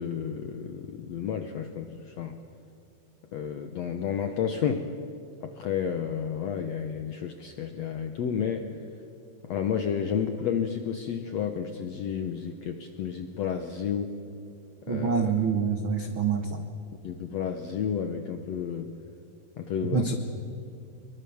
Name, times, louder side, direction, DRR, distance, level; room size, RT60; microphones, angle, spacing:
voice 1, 0.0-2.4 3.3-4.9 5.4-8.7 9.4-14.1 14.9-15.3 17.0-18.9 19.6-20.2, left 7 dB, 75° left, 7 dB, 1.5 m, -31 dB
voice 2, 14.9-16.6 19.9-20.2, right 6 dB, 75° right, 6 dB, 1.1 m, -26 dB
24.0 x 23.0 x 7.1 m, 2.6 s
omnidirectional pair, 4.4 m